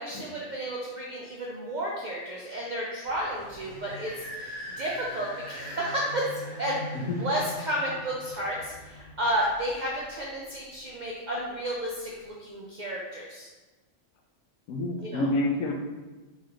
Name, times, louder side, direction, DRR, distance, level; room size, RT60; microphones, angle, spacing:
voice 1, 0.0-6.3 6.6-6.8 7.2-13.5 15.0-15.2, right 1 dB, 80° right, -4 dB, 0.4 m, -32 dB
sound 1, 3.0-10.4, left 1 dB, 35° left, 0.9 m, -42 dB
voice 2, 14.7-15.7, left 2 dB, 80° left, 2 dB, 1.0 m, -28 dB
4.1 x 3.0 x 2.4 m, 1.2 s
omnidirectional pair, 1.4 m